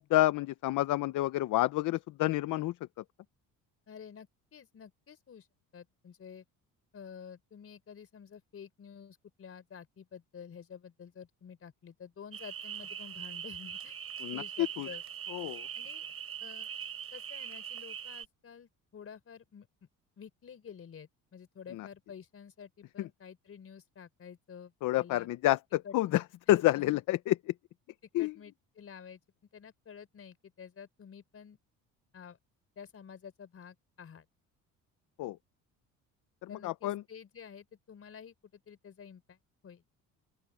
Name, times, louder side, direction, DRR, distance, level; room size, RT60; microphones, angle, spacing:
voice 1, 0.0-3.0 14.2-14.9 15.3-15.7 21.7-21.9 23.0-23.1 24.8-27.5 28.1-28.3 35.2-35.4 36.4-37.0, left 16 dB, 65° left, 0.8 m, -29 dB
voice 2, 3.9-5.5 5.7-6.4 6.9-14.0 14.3-15.0 15.7-16.1 16.4-16.7 17.1-19.9 20.2-24.7 25.0-25.3 25.8-26.2 26.8-27.0 28.2-29.2 29.5-31.6 32.1-32.4 32.8-34.3 36.5-39.8, left 7 dB, 45° left, 4.8 m, -50 dB
sound 1, 12.3-18.3, right 9 dB, 45° right, 6.5 m, -42 dB
open air
cardioid pair, 100°, 33 cm